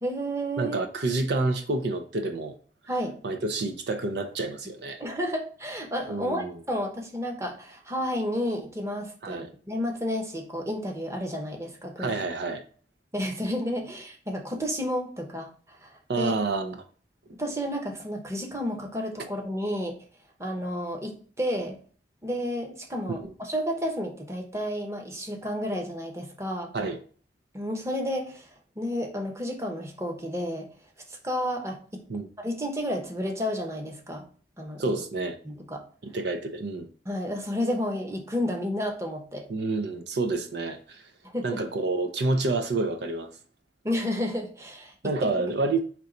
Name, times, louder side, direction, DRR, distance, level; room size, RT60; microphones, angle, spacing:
voice 1, 0.0-0.8 2.9-3.1 5.0-12.1 12.4-12.5 13.1-15.9 16.2-16.4 17.4-20.0 20.4-21.8 22.2-26.7 27.5-28.5 28.8-30.7 31.1-32.0 32.4-34.2 34.6-34.8 35.4-35.8 37.0-39.4 41.3-41.6 43.8-44.9, equal, 15° right, 0.9 m, -31 dB
voice 2, 0.6-2.6 3.2-5.0 6.1-6.5 9.2-9.5 12.0-12.6 16.1-16.8 23.2-23.3 26.7-27.0 32.1-32.3 34.8-35.4 36.0-36.9 39.5-41.0 41.4-43.3 45.0-45.8, right 3 dB, 65° right, 0.5 m, -28 dB
4.5 x 2.9 x 3.8 m
head